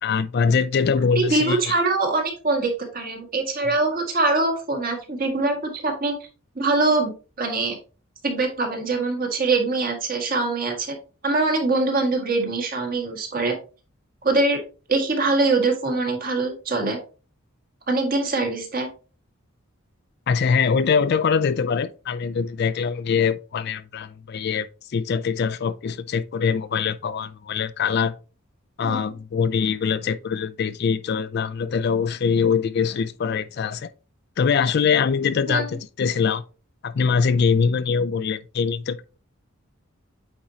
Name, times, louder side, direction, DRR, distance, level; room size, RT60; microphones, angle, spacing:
voice 1, 0.0-1.7 20.3-28.1 28.8-33.9 34.4-36.4 36.8-39.1, left 6 dB, 50° left, 0.3 m, -23 dB
voice 2, 1.1-6.1 6.6-7.8 8.2-11.0 11.2-13.6 14.2-14.6 14.9-17.0 17.9-18.9 28.8-29.0 35.5-35.6, right 3 dB, 45° right, 1.8 m, -23 dB
8.6 x 4.4 x 2.8 m
head